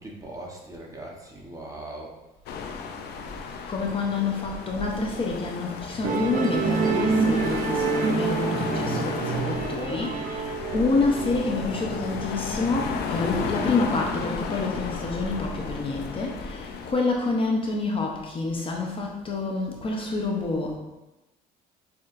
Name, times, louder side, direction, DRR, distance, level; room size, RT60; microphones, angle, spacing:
voice 1, 0.0-2.1, right 1 dB, 20° right, -2 dB, 1.0 m, -40 dB
sound 1, 2.5-16.9, left 5 dB, 75° left, 0.5 m, -33 dB
voice 2, 3.7-20.8, left 3 dB, 30° left, 0 dB, 0.7 m, -28 dB
Musical instrument, 6.0-12.6, right 5 dB, 50° right, 0.5 m, -27 dB
6.4 x 2.8 x 2.5 m, 1.0 s
cardioid pair, 110°, 17 cm